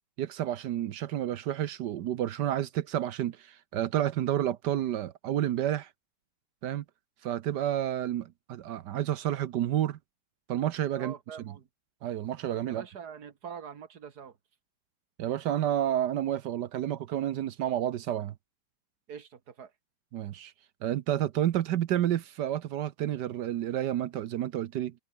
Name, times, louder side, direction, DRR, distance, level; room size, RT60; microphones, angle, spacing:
voice 1, 0.2-5.9 6.6-6.8 7.2-10.0 10.5-11.1 11.4-11.5 12.0-12.8 15.2-18.3 20.1-20.5 20.8-24.9, right 11 dB, 65° right, 1.2 m, -30 dB
voice 2, 11.0-11.7 12.7-14.4 19.1-19.7, right 7 dB, 50° right, 2.0 m, -44 dB
omnidirectional pair, 2.4 m